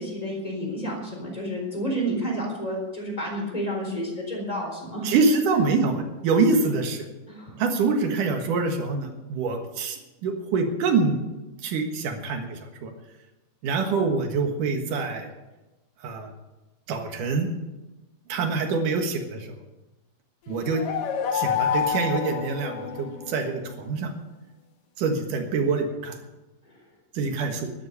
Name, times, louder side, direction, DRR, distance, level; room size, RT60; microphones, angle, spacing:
voice 1, 0.0-5.1 5.5-5.6 7.3-7.6, right 1 dB, 10° left, 0 dB, 3.6 m, -30 dB
voice 2, 5.0-7.1 7.6-11.2 11.6-12.9 13.6-15.3 16.0-16.3 16.9-17.5 18.3-19.5 20.5-20.8 21.3-24.1 25.0-26.2 27.1-27.7, right 4 dB, 60° right, 4 dB, 2.5 m, -25 dB
sound 1, 20.5-23.4, left 7 dB, 60° left, 2.6 m, -28 dB
12.5 x 11.5 x 6.7 m, 1.1 s
omnidirectional pair, 5.1 m